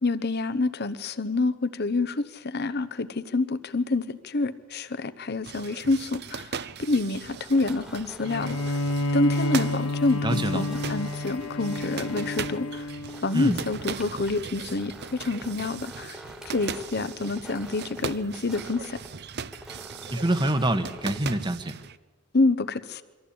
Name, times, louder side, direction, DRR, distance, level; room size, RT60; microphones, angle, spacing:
voice 1, 0.0-6.5 6.8-8.8 9.1-12.9 13.2-16.2 16.4-19.0 22.3-23.0, left 3 dB, 45° left, 13 dB, 0.9 m, -27 dB
sound 1, 5.4-22.0, right 6 dB, 45° right, 0.6 m, -39 dB
sound 2, 7.3-21.7, equal, 5° right, 1.6 m, -47 dB
Bowed string instrument, 8.2-13.7, left 1 dB, 75° left, 1.1 m, -30 dB
voice 2, 10.2-10.7 13.3-13.6 20.1-21.8, right 1 dB, 20° right, 9 dB, 1.1 m, -25 dB
24.5 x 14.5 x 8.7 m, 1.3 s
head